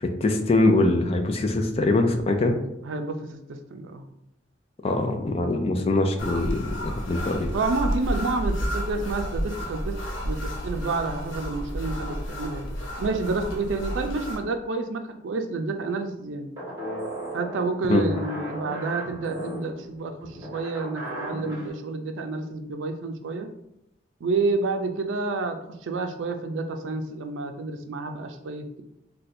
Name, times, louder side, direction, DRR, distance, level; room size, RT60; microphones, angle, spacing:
voice 1, 0.0-2.6 4.8-7.5 17.9-18.0, left 2 dB, 30° left, 5 dB, 0.3 m, -23 dB
voice 2, 2.8-4.0 7.5-10.0 10.2-12.7 13.0-16.5 17.3-23.5 24.2-28.8, right 3 dB, 90° right, 6 dB, 0.4 m, -29 dB
sound 1, 6.2-14.4, equal, 80° left, 0.6 m, -31 dB
sound 2, 16.6-21.7, right 1 dB, 20° right, 1.1 m, -36 dB
2.6 x 2.2 x 4.1 m, 0.82 s
head